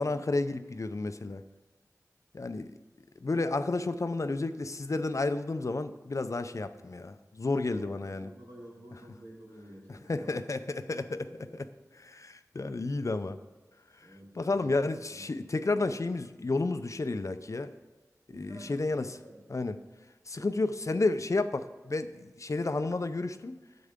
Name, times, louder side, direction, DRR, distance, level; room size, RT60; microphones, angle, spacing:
voice 1, 0.0-1.4 2.3-2.7 3.2-8.3 10.1-11.2 12.0-13.4 14.4-17.7 18.3-19.1 19.5-19.8 20.3-23.6, left 3 dB, 55° left, 11 dB, 0.5 m, -31 dB
voice 2, 7.6-10.4 10.7-11.8 14.0-15.5 18.3-19.6 20.3-20.5, equal, 90° right, -6 dB, 3.2 m, -51 dB
10.0 x 7.7 x 3.7 m, 1.2 s
wide cardioid pair, 50°, 6 cm